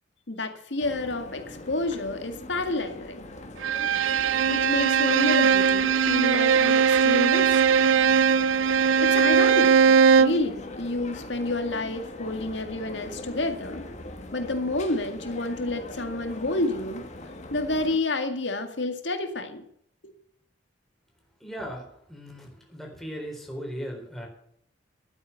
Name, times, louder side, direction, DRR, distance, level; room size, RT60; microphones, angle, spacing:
voice 1, 0.3-3.3 4.5-7.6 9.0-9.7 10.1-13.9 14.3-17.1 17.5-19.6 20.0-20.1, left 2 dB, 65° left, 7 dB, 2.0 m, -29 dB
sound 1, 0.8-18.0, left 1 dB, 35° left, 1.8 m, -41 dB
Bowed string instrument, 3.6-10.5, right 6 dB, 85° right, 0.4 m, -20 dB
voice 2, 21.4-24.3, equal, ahead, 0 dB, 4.0 m, -38 dB
12.5 x 9.1 x 7.1 m, 0.68 s
head